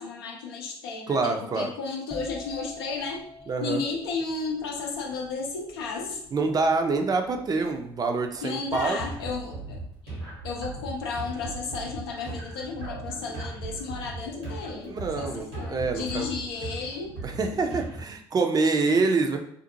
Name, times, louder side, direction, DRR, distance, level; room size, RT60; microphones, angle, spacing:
voice 1, 0.0-3.3 3.6-6.2 8.4-10.2 10.4-17.2, left 4 dB, 80° left, 0 dB, 0.5 m, -33 dB
voice 2, 1.1-1.7 3.5-3.8 6.3-9.0 14.9-16.3 17.2-19.4, right 3 dB, 30° right, 5 dB, 0.4 m, -26 dB
sound 1, 2.1-9.7 10.0-10.4, left 2 dB, 15° left, 0.6 m, -47 dB
sound 2, 8.7-18.0, right 2 dB, 85° right, 1.1 m, -38 dB
2.6 x 2.4 x 2.6 m, 0.67 s
hypercardioid pair, 55°, 13 cm